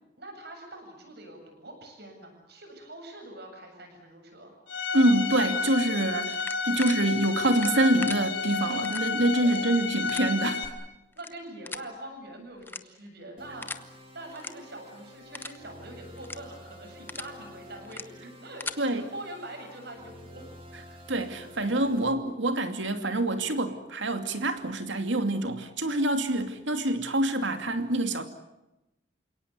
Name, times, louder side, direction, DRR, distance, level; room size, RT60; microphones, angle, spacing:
voice 1, 0.2-4.5 9.4-9.8 11.1-20.5, right 1 dB, 55° right, 3 dB, 8.0 m, -44 dB
Bowed string instrument, 4.7-10.7, left 5 dB, 60° left, 4.2 m, -31 dB
voice 2, 4.9-6.4 6.7-10.7 18.8-19.1 21.1-28.2, right 1 dB, 70° right, 7 dB, 2.6 m, -26 dB
sound 1, 6.3-7.0 7.5-8.2 8.8-9.0 9.4-9.6 10.1-10.2 11.1-11.3 11.7-11.9 12.6-13.1 13.6-13.8 14.3-14.5 14.9-15.0 15.3-15.6 16.2-16.4 16.8-17.3 17.8-18.0 18.4-18.8, left 3 dB, 10° left, 0.9 m, -38 dB
sound 2, 13.4-22.1, equal, 30° right, 3.3 m, -49 dB
28.5 x 18.0 x 9.7 m, 0.96 s
head